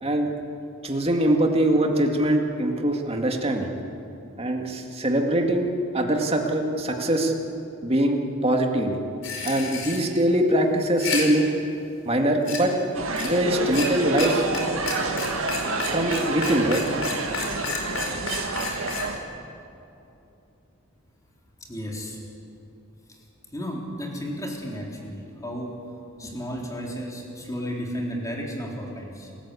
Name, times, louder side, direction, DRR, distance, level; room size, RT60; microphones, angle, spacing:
voice 1, 0.8-3.7 4.4-7.3 7.8-9.0 9.4-11.5 12.1-12.7 13.2-14.5 15.8-16.8, right 1 dB, 30° right, 2 dB, 2.2 m, -23 dB
sound 1, 9.2-10.0 10.8-11.2 12.5-12.6 13.2-13.3 13.7-13.9 14.2-14.3 14.5-14.6 14.9-19.0, left 4 dB, 70° left, 5.1 m, -30 dB
sound 2, 12.9-19.2, right 3 dB, 80° right, 2.0 m, -28 dB
voice 2, 21.7-22.2 23.5-25.7 26.2-29.3, equal, 15° left, -1 dB, 3.7 m, -33 dB
29.0 x 14.5 x 8.5 m, 2.8 s
head